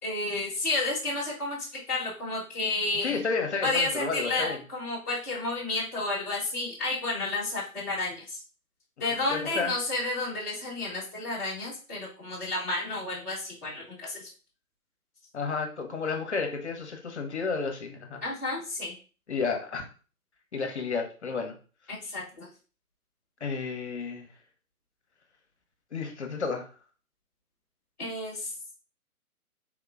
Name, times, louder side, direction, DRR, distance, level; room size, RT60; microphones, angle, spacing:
voice 1, 0.0-3.2 3.6-8.4 9.0-14.2 18.2-18.9 21.9-22.5 28.0-28.7, left 2 dB, 10° left, -10 dB, 0.6 m, -31 dB
voice 2, 3.0-4.6 9.3-9.7 15.3-18.2 19.3-19.8 20.5-21.6 23.4-24.3 25.9-26.7, left 5 dB, 50° left, 4 dB, 0.8 m, -31 dB
3.5 x 2.9 x 2.4 m, 0.37 s
figure-of-eight pair, 145°, 44 cm